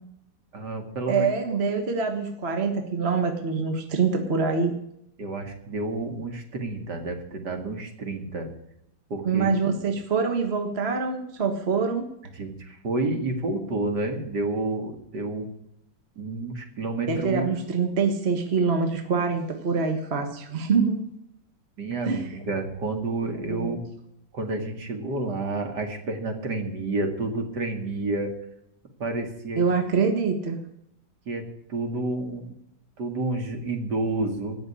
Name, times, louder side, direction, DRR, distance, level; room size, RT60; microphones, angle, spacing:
voice 1, 0.5-1.3 5.2-8.5 9.1-9.5 12.4-15.5 16.2-17.5 21.8-23.9 24.3-28.3 29.0-29.6 31.3-32.5 33.0-34.6, right 2 dB, 60° right, 4 dB, 2.7 m, -30 dB
voice 2, 1.1-4.7 9.2-12.1 17.1-21.0 22.0-22.3 23.3-23.7 29.6-30.6, right 5 dB, 35° right, 5 dB, 1.7 m, -25 dB
17.0 x 6.8 x 9.7 m, 0.76 s
omnidirectional pair, 2.1 m